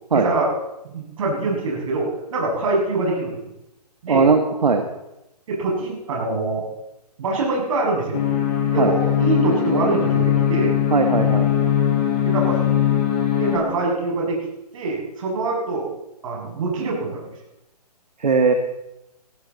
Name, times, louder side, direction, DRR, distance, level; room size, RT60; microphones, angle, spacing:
voice 1, 0.1-0.5 0.8-3.4 4.0-4.3 5.5-6.6 7.2-8.2 8.7-10.8 12.2-12.6 13.4-14.4 14.7-15.9 16.2-17.2, right 3 dB, 55° right, -2 dB, 7.2 m, -24 dB
voice 2, 4.1-4.8 8.8-8.9 10.9-11.5 18.2-18.5, right 4 dB, 75° right, 5 dB, 1.8 m, -18 dB
sound 1, 8.1-13.6, left 10 dB, 30° left, 5.6 m, -20 dB
20.5 x 14.0 x 4.2 m, 0.92 s
hypercardioid pair, 135°, 21 cm